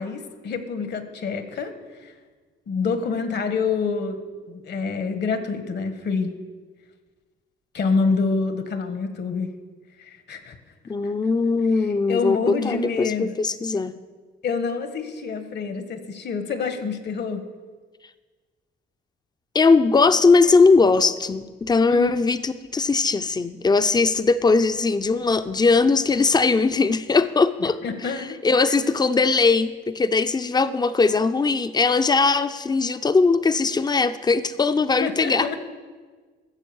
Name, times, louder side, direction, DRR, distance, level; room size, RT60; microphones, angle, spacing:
voice 1, 0.0-1.7 2.0-2.1 2.7-4.2 4.5-6.3 7.7-9.5 10.0-10.6 11.0-11.1 11.8-13.4 14.4-17.4 21.9-22.1 27.6-28.4 28.6-28.7 35.0-35.7, left 4 dB, 60° left, 9 dB, 1.4 m, -27 dB
voice 2, 10.9-13.9 19.5-28.1 28.4-35.5, left 4 dB, 20° left, 12 dB, 0.6 m, -20 dB
14.0 x 7.1 x 7.1 m, 1.4 s
cardioid pair, 90°, 20 cm